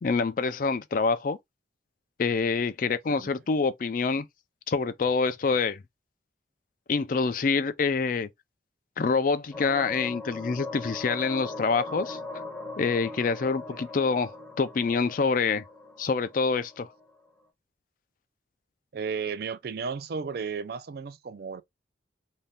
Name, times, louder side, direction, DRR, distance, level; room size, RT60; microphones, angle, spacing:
voice 1, 0.0-1.4 2.2-4.3 4.7-5.8 6.9-8.3 9.0-12.2 12.8-15.6 16.0-16.9, left 4 dB, 45° left, 0.4 m, -26 dB
sound 1, 9.5-17.1, left 2 dB, 5° left, 0.6 m, -40 dB
voice 2, 18.9-21.6, right 5 dB, 55° right, 0.4 m, -34 dB
2.7 x 2.2 x 3.3 m
head